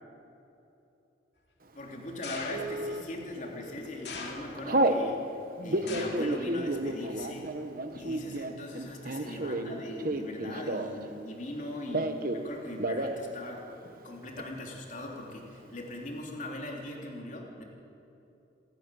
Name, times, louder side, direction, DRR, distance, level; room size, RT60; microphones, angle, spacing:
voice 1, 1.8-5.3 5.6-7.5 7.9-13.6 14.0-17.6, left 1 dB, 40° left, -1 dB, 3.4 m, -40 dB
sound 1, 2.2-2.9 4.0-4.8 5.9-6.4 6.7-7.2 8.1-8.2, left 4 dB, 60° left, 2.7 m, -41 dB
Telephone, 2.5-3.0 3.6-3.9 4.1-5.0 5.6-11.1 11.3-12.4 12.7-13.2 13.5-13.6 13.8-14.4, right 1 dB, 50° right, 1.1 m, -31 dB
28.5 x 10.0 x 9.3 m, 2.9 s
head